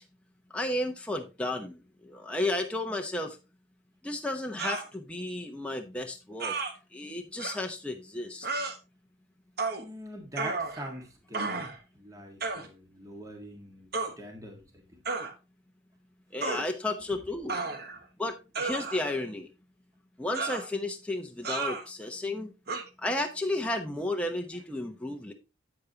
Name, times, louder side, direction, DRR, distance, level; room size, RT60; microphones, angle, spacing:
voice 1, 0.5-3.4 4.0-6.5 6.9-8.5 16.3-17.6 18.2-19.5 20.2-22.5 23.0-25.3, left 1 dB, 5° left, 2 dB, 0.8 m, -33 dB
sound 1, 4.6-4.9 6.4-6.7 7.4-7.6 8.4-8.8 9.6-9.8 10.4-11.0 11.3-11.8 12.4-12.7 13.9-14.1 15.1-15.3 16.4-16.7 17.5-18.0 18.5-19.2 20.3-20.7 21.4-21.8 22.7-22.8, right 3 dB, 50° right, 1.2 m, -33 dB
voice 2, 9.8-11.7 11.9-15.0 17.1-17.2, equal, 15° right, 2 dB, 1.7 m, -44 dB
8.6 x 8.3 x 2.8 m, 0.28 s
head